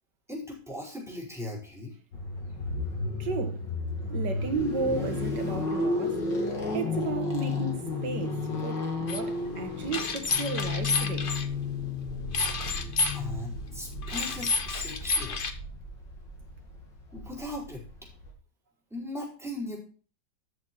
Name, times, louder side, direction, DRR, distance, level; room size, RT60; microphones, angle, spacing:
voice 1, 0.3-1.9 13.1-15.4 17.1-17.8 18.9-19.8, left 1 dB, ahead, 4.9 m, -38 dB
sound 1, 2.1-18.3, left 3 dB, 85° left, 3.3 m, -33 dB
voice 2, 3.2-3.6 4.1-6.2 6.7-11.3, right 5 dB, 75° right, 2.1 m, -34 dB
sound 2, 9.1-9.2 9.9-11.5 12.3-13.2 14.0-15.5, left 4 dB, 40° left, 0.9 m, -29 dB
13.5 x 6.6 x 4.6 m
omnidirectional pair, 1.9 m